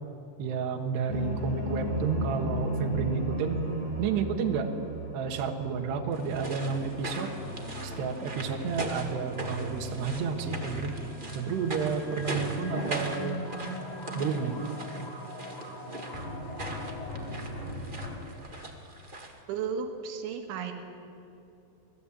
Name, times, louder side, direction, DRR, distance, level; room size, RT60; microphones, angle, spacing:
voice 1, 0.4-3.6 4.0-4.7 5.1-7.3 7.8-10.9 11.4-13.4 14.1-14.6, right 6 dB, 70° right, 4 dB, 3.6 m, -31 dB
sound 1, 1.1-15.8 16.1-18.2, equal, 50° left, 8.9 m, -37 dB
sound 2, 6.1-19.4, right 1 dB, 45° right, 0.6 m, -40 dB
sound 3, 13.4-18.1, equal, 10° left, 3.3 m, -44 dB
voice 2, 19.5-20.7, right 6 dB, 85° right, 4 dB, 4.0 m, -34 dB
27.5 x 19.0 x 8.7 m, 2.7 s
omnidirectional pair, 5.3 m